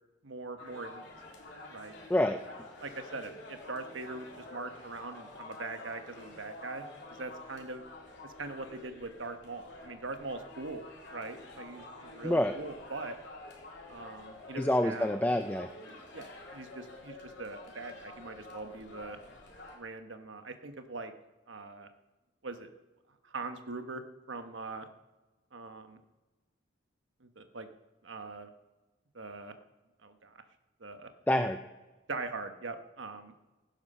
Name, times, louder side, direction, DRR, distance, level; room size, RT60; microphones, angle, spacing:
voice 1, 0.2-1.1 1.7-2.0 2.8-6.8 7.1-7.8 8.2-10.8 11.1-13.2 13.9-15.1 16.1-19.2 19.7-21.1 21.5-21.9 22.4-22.7 23.2-24.9 25.5-26.0 27.2-27.7 28.0-28.5 29.1-29.5 30.0-30.4 30.8-31.1 32.1-33.3, right 3 dB, 80° right, 8 dB, 1.2 m, -42 dB
sound 1, 0.6-19.8, left 2 dB, 60° left, 3.5 m, -49 dB
voice 2, 2.1-2.4 12.2-12.5 14.6-15.7 31.3-31.6, left 1 dB, 10° left, 7 dB, 0.4 m, -27 dB
17.0 x 11.0 x 5.4 m, 1.2 s
head